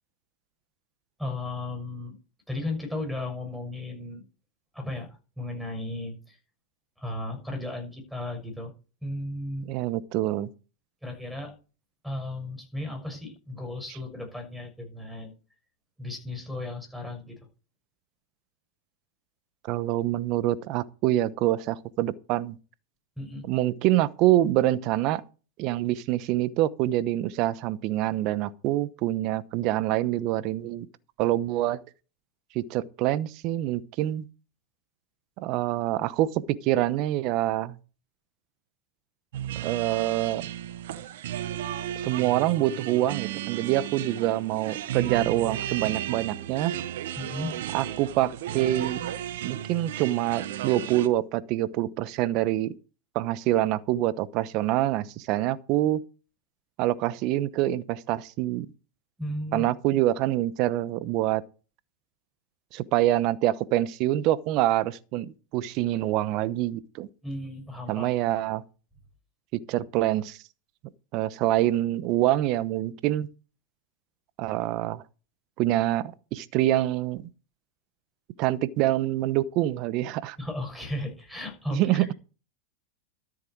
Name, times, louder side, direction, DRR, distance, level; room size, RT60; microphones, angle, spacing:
voice 1, 1.2-2.1 2.5-4.2 4.7-5.1 5.4-6.4 7.0-8.7 9.0-9.7 11.0-11.5 12.0-15.3 16.0-17.4 23.2-23.5 47.2-47.5 59.2-59.7 67.2-68.1 80.4-82.1, left 2 dB, ahead, 6.3 m, -35 dB
voice 2, 9.6-10.5 19.7-22.6 23.4-25.2 25.6-30.9 31.2-31.8 32.5-34.3 35.4-37.8 39.6-40.4 42.0-46.7 47.7-49.1 49.4-52.7 53.1-56.0 56.8-58.7 59.5-61.4 62.7-67.1 67.9-68.6 69.5-70.4 71.1-73.3 74.4-75.0 75.6-77.2 78.4-80.4 81.7-82.1, right 14 dB, 50° right, 0.9 m, -26 dB
sound 1, 39.3-51.1, right 11 dB, 70° right, 1.0 m, -34 dB
13.0 x 7.7 x 4.7 m
hypercardioid pair, 105°, 0 cm